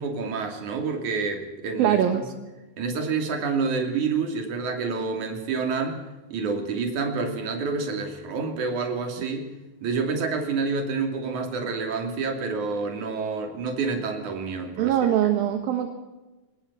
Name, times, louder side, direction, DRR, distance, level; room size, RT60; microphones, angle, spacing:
voice 1, 0.0-2.2 2.8-6.0 6.3-9.5 9.8-15.0, right 4 dB, 50° right, 4 dB, 3.9 m, -28 dB
voice 2, 1.8-2.2 14.8-15.9, right 10 dB, 70° right, 5 dB, 3.0 m, -22 dB
23.5 x 20.0 x 5.7 m, 1.1 s
omnidirectional pair, 4.6 m